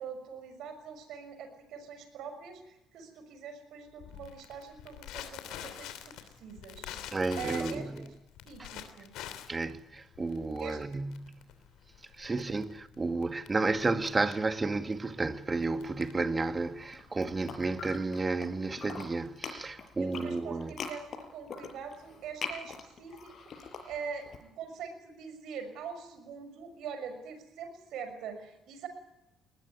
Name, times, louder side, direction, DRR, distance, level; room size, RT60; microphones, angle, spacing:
voice 1, 0.0-8.1 8.5-9.1 10.6-10.8 12.3-12.4 20.0-23.3 23.6-24.3 24.6-28.9, right 6 dB, 70° right, 6.1 m, -43 dB
Crackle, 4.0-18.2, left 11 dB, 80° left, 3.0 m, -47 dB
voice 2, 7.1-8.1 8.6-8.7 9.5-11.3 12.2-20.7, right 3 dB, 30° right, 2.2 m, -32 dB
sound 1, 16.8-18.5 18.7-24.4, left 5 dB, 55° left, 5.8 m, -42 dB
20.5 x 20.5 x 9.9 m
supercardioid pair, 65°, 0 cm